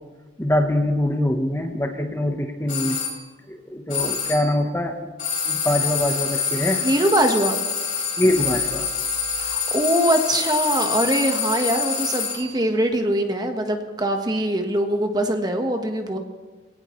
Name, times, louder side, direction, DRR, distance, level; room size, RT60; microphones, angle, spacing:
voice 1, 0.4-3.0 3.5-5.0 5.5-6.8 8.2-8.9, left 1 dB, 15° left, 4 dB, 1.0 m, -23 dB
sound 1, 2.7-3.2 3.9-4.5 5.2-12.6, left 6 dB, 45° left, 4.4 m, -26 dB
voice 2, 6.8-7.6 9.4-16.2, right 1 dB, 25° right, 5 dB, 1.4 m, -22 dB
22.0 x 17.5 x 3.2 m, 1.3 s
head